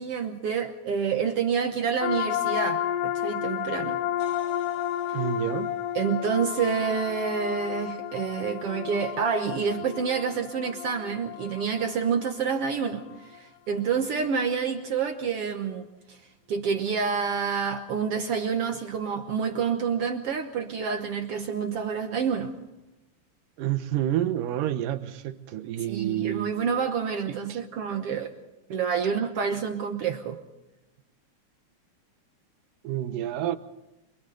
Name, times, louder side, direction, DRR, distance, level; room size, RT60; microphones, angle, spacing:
voice 1, 0.0-4.0 5.9-16.2 16.5-22.5 25.9-28.3 28.7-30.4, right 6 dB, 65° right, 1.6 m, -28 dB
sound 1, 2.0-13.4, left 11 dB, 85° left, 3.0 m, -32 dB
voice 2, 5.1-5.7 23.6-26.6 27.3-27.6 32.8-33.6, right 12 dB, 85° right, 2.6 m, -29 dB
28.0 x 24.5 x 3.9 m
omnidirectional pair, 3.8 m